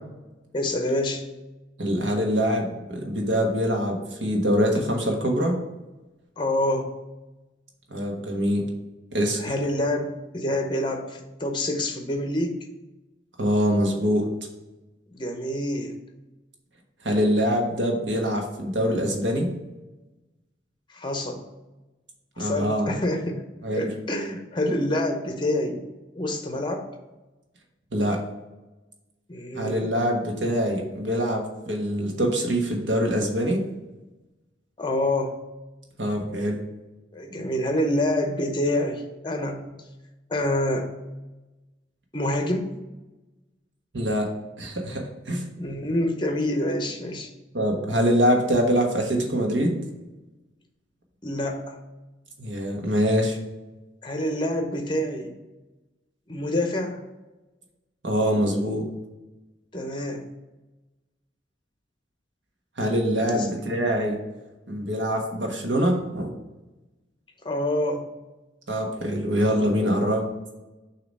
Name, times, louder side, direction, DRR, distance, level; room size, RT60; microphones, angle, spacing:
voice 1, 0.5-1.2 6.4-6.9 9.4-12.6 15.1-16.0 20.9-21.4 22.4-23.4 23.7-25.8 26.1-26.9 29.3-29.9 34.8-35.3 37.1-39.6 40.3-40.9 42.1-42.7 45.6-47.3 51.2-51.8 54.0-55.3 56.3-57.0 59.7-60.2 63.3-63.5 67.4-68.1, left 1 dB, 25° left, 5 dB, 0.7 m, -27 dB
voice 2, 1.8-5.6 7.9-8.6 9.1-9.5 13.4-14.2 17.0-19.5 22.4-22.9 23.6-23.9 27.9-28.2 29.5-33.6 36.0-36.6 43.9-44.3 44.6-45.4 47.5-49.8 52.4-53.4 58.0-58.8 62.8-64.2 64.7-66.3 68.7-70.2, equal, 70° right, 1 dB, 1.3 m, -24 dB
6.6 x 2.9 x 5.3 m, 1.1 s
head